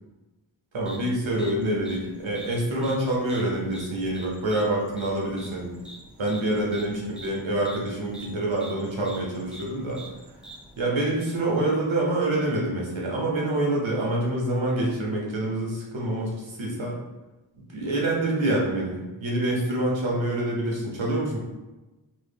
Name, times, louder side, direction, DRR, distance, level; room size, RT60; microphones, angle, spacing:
voice 1, 0.7-5.7 6.2-10.0 10.8-17.0 17.7-21.4, right 1 dB, 85° right, -3 dB, 0.9 m, -26 dB
sound 1, 0.8-10.8, right 1 dB, ahead, 0.3 m, -46 dB
3.1 x 2.1 x 3.4 m, 1.1 s
wide cardioid pair, 60°, 45 cm